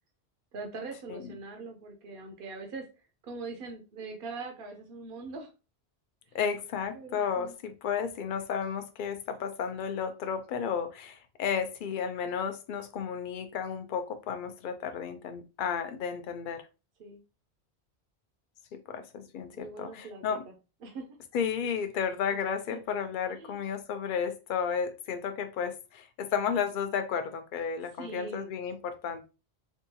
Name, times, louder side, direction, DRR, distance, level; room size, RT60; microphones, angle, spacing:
voice 1, 0.5-2.8 3.2-5.5 6.3-6.4 6.9-7.5 17.0-17.2 19.5-20.5 20.8-21.0 21.6-21.7 22.7-22.8 23.4-23.6 28.0-28.5, right 3 dB, 60° right, 0.8 m, -42 dB
voice 2, 6.3-16.7 18.9-20.4 21.3-29.3, left 7 dB, 60° left, 0.6 m, -33 dB
3.6 x 2.3 x 2.7 m
omnidirectional pair, 1.1 m